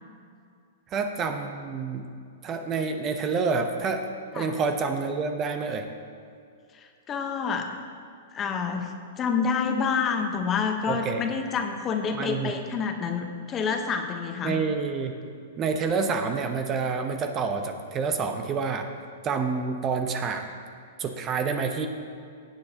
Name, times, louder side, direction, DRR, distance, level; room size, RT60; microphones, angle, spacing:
voice 1, 0.9-2.1 2.4-4.1 4.3-5.9 10.9-11.2 12.1-12.6 14.4-15.2 15.6-18.9 19.2-20.5 21.0-21.9, right 5 dB, 30° right, 6 dB, 0.8 m, -28 dB
voice 2, 6.8-7.7 8.3-14.6, left 6 dB, 25° left, 5 dB, 1.0 m, -28 dB
17.5 x 7.8 x 2.9 m, 2.4 s
hypercardioid pair, 120°, 0 cm